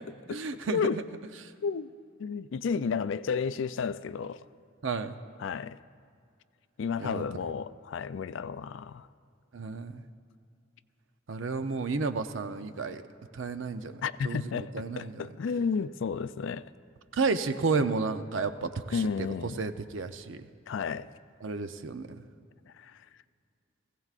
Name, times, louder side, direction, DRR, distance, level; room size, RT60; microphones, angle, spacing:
voice 1, 0.3-1.0 4.8-5.2 7.0-7.2 9.5-10.0 11.3-13.0 13.3-13.9 14.2-15.3 17.1-19.3 19.6-20.5 21.4-22.1, right 4 dB, 70° right, 0.6 m, -32 dB
voice 2, 2.2-4.4 5.4-5.8 6.8-9.1 14.0-16.6 18.9-19.6 20.7-21.1 22.8-23.0, left 6 dB, 65° left, 0.3 m, -32 dB
20.0 x 16.0 x 2.5 m
head